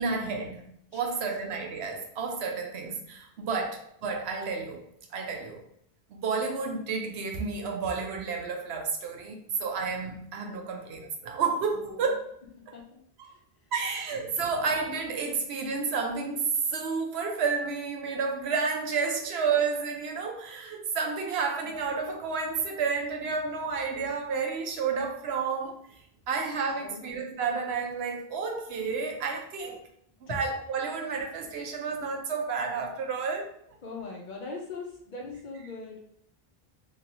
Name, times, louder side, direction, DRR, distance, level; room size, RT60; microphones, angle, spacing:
voice 1, 0.0-4.8 5.1-5.6 6.1-12.2 13.2-13.3 13.7-25.8 26.3-29.8 30.2-33.5, right 5 dB, 85° right, 3 dB, 0.9 m, -31 dB
voice 2, 11.7-12.1 12.7-13.0 26.8-27.1 29.6-29.8 30.3-30.4 33.8-36.2, left 3 dB, 55° left, 0 dB, 0.7 m, -41 dB
2.9 x 2.7 x 2.8 m, 0.70 s
omnidirectional pair, 1.0 m